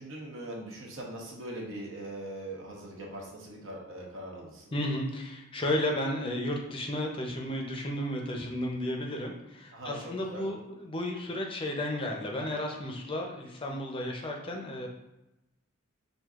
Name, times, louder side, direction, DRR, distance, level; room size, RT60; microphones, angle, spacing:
voice 1, 0.0-4.7 9.7-10.5, right 1 dB, 70° right, -2 dB, 1.0 m, -41 dB
voice 2, 4.7-14.9, left 1 dB, 25° left, 1 dB, 0.5 m, -33 dB
6.1 x 2.6 x 2.4 m, 0.94 s
head